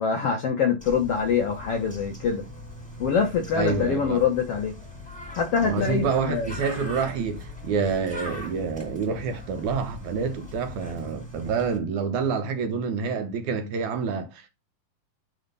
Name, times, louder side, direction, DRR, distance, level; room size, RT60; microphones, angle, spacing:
voice 1, 0.0-2.4 3.0-4.7 5.3-6.5, left 6 dB, 65° left, 1.5 m, -24 dB
Bird, 0.8-11.8, left 2 dB, 5° left, 1.9 m, -40 dB
voice 2, 3.5-4.2 5.6-14.5, right 5 dB, 70° right, 2.1 m, -28 dB
10.5 x 3.5 x 5.4 m
omnidirectional pair, 4.0 m